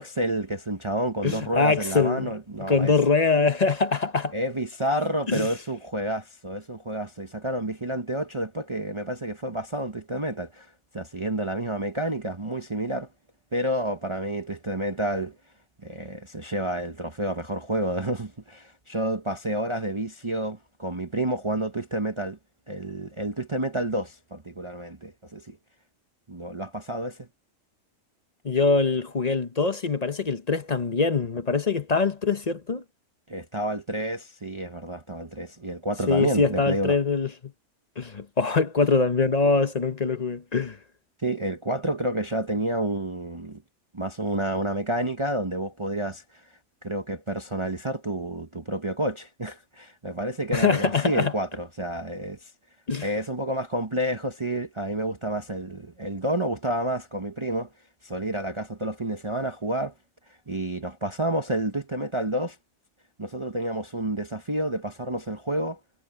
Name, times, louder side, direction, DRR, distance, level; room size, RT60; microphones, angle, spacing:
voice 1, 0.0-3.0 4.3-13.1 13.5-15.3 15.8-22.4 22.7-25.6 26.3-27.3 33.3-37.0 41.2-43.6 43.9-46.5 46.8-52.5 53.0-57.7 58.0-59.9 60.5-62.6 63.2-65.8, right 1 dB, 25° right, 1.0 m, -29 dB
voice 2, 1.2-2.3 2.7-4.3 5.3-5.5 28.4-32.8 36.1-37.5 38.0-40.8 50.5-51.3 52.9-53.1, left 4 dB, 35° left, 0.8 m, -23 dB
omnidirectional pair, 1.4 m